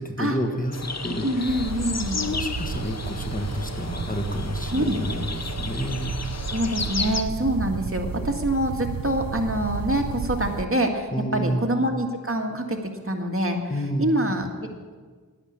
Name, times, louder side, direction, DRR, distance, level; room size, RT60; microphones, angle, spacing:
voice 1, 0.0-1.6 2.1-6.1 11.1-11.7 13.7-14.1, equal, 25° left, 4 dB, 1.6 m, -29 dB
sound 1, 0.7-7.2, left 4 dB, 50° left, 0.8 m, -33 dB
voice 2, 1.2-2.2 4.7-5.0 6.5-12.8 13.0-14.5, right 1 dB, 40° right, 2 dB, 1.9 m, -25 dB
sound 2, 1.5-10.6, right 6 dB, 80° right, 0.5 m, -33 dB
11.5 x 10.0 x 8.7 m, 1.5 s
wide cardioid pair, 40°, 34 cm